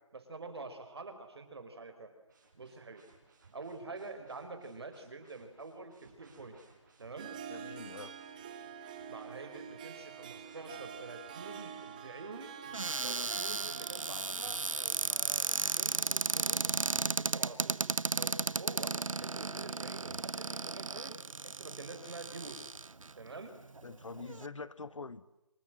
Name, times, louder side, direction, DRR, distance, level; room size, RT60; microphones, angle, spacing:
voice 1, 0.1-2.1 2.5-3.0 3.5-6.6 7.0-7.3 9.1-12.5 13.0-16.7 17.0-17.9 18.1-22.7 23.2-23.6, right 3 dB, 55° right, 7 dB, 5.2 m, -47 dB
sound 1, 2.3-17.7, right 4 dB, 35° right, 5.6 m, -64 dB
Harp, 7.0-15.7, right 8 dB, 15° right, 1.3 m, -47 dB
voice 2, 7.5-8.1 23.8-25.3, left 4 dB, 75° left, 16 dB, 1.5 m, -45 dB
Cupboard open or close, 12.7-23.1 23.8-23.9 24.1-24.5, right 3 dB, 90° right, 1.1 m, -34 dB
27.0 x 26.5 x 7.8 m, 0.93 s
figure-of-eight pair, 170°, 16 cm